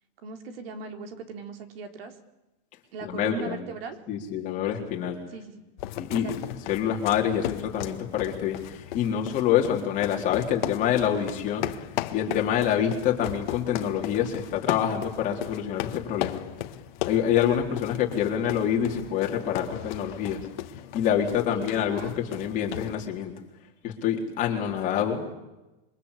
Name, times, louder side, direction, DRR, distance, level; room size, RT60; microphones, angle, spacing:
voice 1, 0.2-2.1 2.9-4.0 5.3-5.6 6.1-6.3 21.5-22.5, right 5 dB, 80° right, 6 dB, 4.3 m, -39 dB
voice 2, 3.0-3.6 4.1-5.2 6.0-6.4 6.7-11.7 12.1-16.4 17.0-20.4 20.9-23.3 23.8-25.3, left 9 dB, 25° left, 1 dB, 4.0 m, -26 dB
sound 1, 5.8-23.0, left 14 dB, 50° left, 1.7 m, -36 dB
27.5 x 24.0 x 8.5 m, 1.0 s
supercardioid pair, 180°, 29 cm